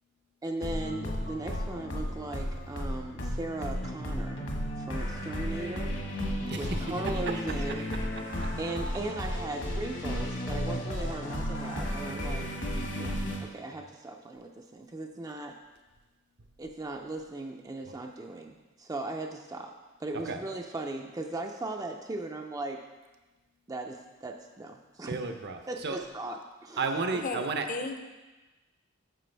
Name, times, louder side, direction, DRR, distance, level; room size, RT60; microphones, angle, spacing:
voice 1, 0.4-4.4 4.8-6.0 6.6-7.9 8.6-12.5 13.0-15.6 16.6-19.7 20.0-22.8 23.7-25.2 25.7-26.9, right 2 dB, 20° right, 3 dB, 0.4 m, -38 dB
sound 1, 0.6-13.4, equal, 65° left, 1.4 m, -33 dB
voice 2, 6.5-7.8 8.2-8.6 12.1-12.5 13.7-13.8 17.9-18.0 20.3-20.4 25.1-26.0 26.8-27.7, right 4 dB, 55° right, 6 dB, 0.7 m, -34 dB
voice 3, 27.2-28.1, left 3 dB, 40° left, 6 dB, 0.6 m, -35 dB
9.2 x 6.6 x 3.4 m, 1.2 s
head